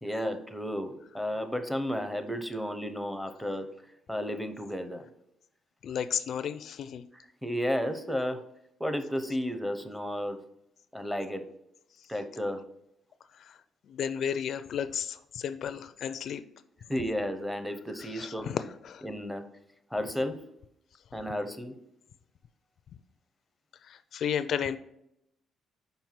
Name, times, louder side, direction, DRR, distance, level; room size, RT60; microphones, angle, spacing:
voice 1, 0.0-3.7 4.1-5.0 7.1-8.4 8.8-10.4 10.9-11.4 12.1-12.6 16.9-18.5 19.0-19.4 19.9-20.4 21.1-21.8, equal, ahead, 7 dB, 0.7 m, -32 dB
voice 2, 5.8-7.0 13.4-13.6 13.9-16.4 18.0-19.0 23.8-24.8, left 8 dB, 60° left, 11 dB, 0.4 m, -33 dB
5.4 x 4.5 x 5.8 m, 0.78 s
cardioid pair, 120°, 0 cm